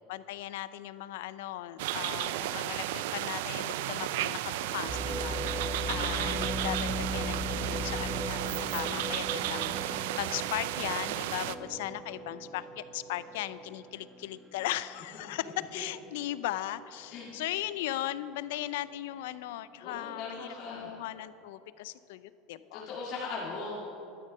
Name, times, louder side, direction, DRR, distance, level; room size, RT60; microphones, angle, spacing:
voice 1, 0.1-22.9, left 14 dB, 80° left, 15 dB, 0.4 m, -38 dB
sound 1, 1.8-11.5, right 13 dB, 80° right, 0.4 m, -33 dB
sound 2, 4.9-14.8 15.3-15.4 16.1-16.4, equal, 10° right, 1.1 m, -38 dB
voice 2, 5.1-5.5 8.6-9.0 11.4-11.5 17.1-17.3 19.8-20.9 22.7-23.8, left 4 dB, 50° left, -5 dB, 2.2 m, -40 dB
12.0 x 9.7 x 5.5 m, 2.8 s
supercardioid pair, 125°, 0 cm